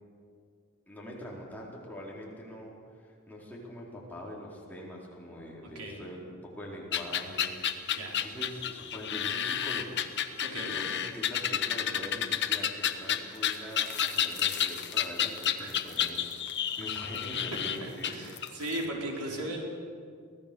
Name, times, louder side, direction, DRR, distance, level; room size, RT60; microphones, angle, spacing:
voice 1, 0.9-10.0 10.6-18.3 19.0-19.5, equal, 10° left, -4 dB, 4.2 m, -43 dB
sound 1, 6.9-18.8, left 9 dB, 50° left, 1.1 m, -30 dB
voice 2, 10.4-10.7 15.6-15.7 16.9-17.0 17.8-19.6, right 1 dB, 90° right, -1 dB, 4.3 m, -37 dB
24.0 x 17.5 x 7.0 m, 2.2 s
head